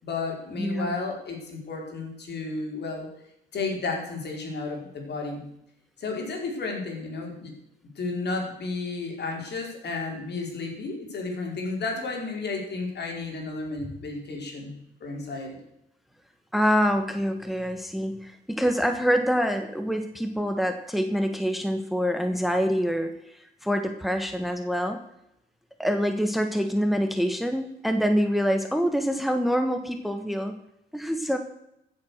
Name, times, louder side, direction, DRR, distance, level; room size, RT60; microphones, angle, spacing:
voice 1, 0.0-3.1 3.5-5.5 6.0-7.5 7.9-15.6, left 3 dB, 55° left, 1 dB, 4.7 m, -32 dB
voice 2, 0.6-0.9 16.5-25.0 25.8-30.6 30.9-31.4, equal, ahead, 6 dB, 1.3 m, -26 dB
15.0 x 7.9 x 6.5 m, 0.82 s
cardioid pair, 90°, 20 cm